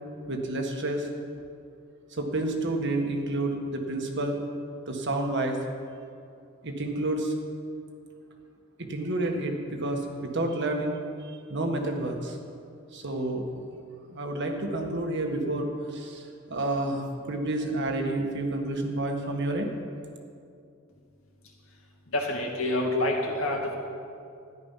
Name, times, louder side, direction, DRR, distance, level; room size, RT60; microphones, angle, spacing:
voice 1, 0.3-1.1 2.1-4.4 4.9-5.6 6.6-7.3 8.8-12.4 12.9-13.4 14.1-19.7, right 2 dB, 55° right, 3 dB, 1.6 m, -30 dB
voice 2, 22.1-23.7, left 1 dB, 70° left, -1 dB, 2.4 m, -27 dB
13.5 x 11.0 x 5.8 m, 2.4 s
head